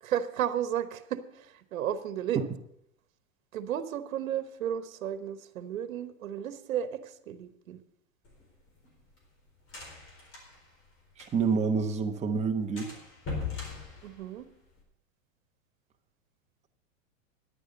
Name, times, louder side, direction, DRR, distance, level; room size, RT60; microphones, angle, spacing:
voice 1, 0.0-2.4 3.5-7.8 14.0-14.5, right 10 dB, 80° right, 12 dB, 1.2 m, -33 dB
sound 1, 8.2-11.7 11.9-12.0 12.3-12.5 12.8-14.8, left 4 dB, 30° left, 4.2 m, -40 dB
voice 2, 11.2-12.9, right 5 dB, 15° right, 5 dB, 1.0 m, -28 dB
10.5 x 9.3 x 6.6 m, 0.73 s
hypercardioid pair, 135°, 40 cm